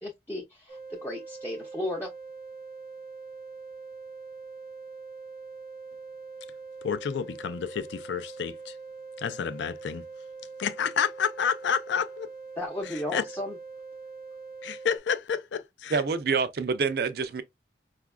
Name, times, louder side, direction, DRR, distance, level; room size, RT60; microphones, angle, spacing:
voice 1, 0.0-2.1 12.6-13.6, left 1 dB, 10° left, 0.5 m, -34 dB
sound 1, 0.7-15.0, right 4 dB, 45° left, 0.8 m, -43 dB
voice 2, 6.8-8.7 9.2-10.0 10.6-12.3 12.8-13.2 14.6-16.0, left 7 dB, 70° left, 0.4 m, -30 dB
voice 3, 15.9-17.4, right 5 dB, 55° right, 0.5 m, -27 dB
4.9 x 2.3 x 2.3 m
head